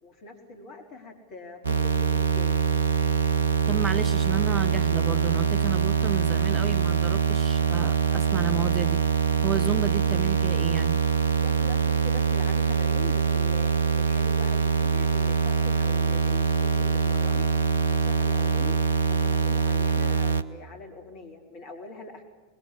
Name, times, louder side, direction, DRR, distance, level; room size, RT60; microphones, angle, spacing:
voice 1, 0.0-2.6 11.4-17.5 18.0-18.8 19.1-22.2, left 3 dB, 45° left, 4 dB, 4.1 m, -43 dB
sound 1, 1.6-20.4, right 6 dB, 75° right, 0.9 m, -24 dB
voice 2, 3.7-9.0 9.4-11.0, right 7 dB, 20° right, 13 dB, 1.4 m, -31 dB
26.0 x 21.0 x 8.6 m, 1.3 s
figure-of-eight pair, 90°, 0 cm